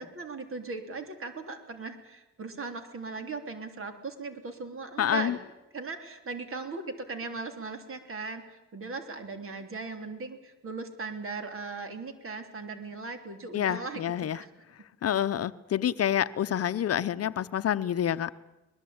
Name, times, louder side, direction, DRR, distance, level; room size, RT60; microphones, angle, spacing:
voice 1, 0.0-5.4 5.7-14.0 14.3-14.5, right 4 dB, 45° right, 7 dB, 3.2 m, -38 dB
voice 2, 5.0-5.4 13.5-14.4 15.0-18.3, left 10 dB, 50° left, 13 dB, 0.8 m, -28 dB
22.0 x 20.5 x 8.7 m, 0.98 s
cardioid pair, 90°, 30 cm